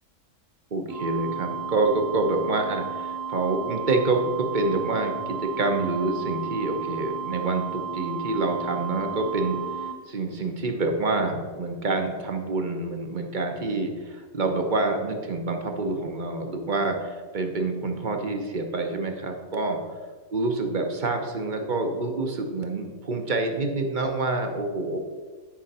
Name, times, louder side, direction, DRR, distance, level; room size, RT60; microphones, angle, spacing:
voice 1, 0.7-19.8 20.3-25.0, right 3 dB, 40° right, 4 dB, 0.7 m, -27 dB
sound 1, 0.9-9.9, right 6 dB, 80° right, 1.3 m, -33 dB
10.0 x 5.0 x 4.2 m, 1.4 s
omnidirectional pair, 1.7 m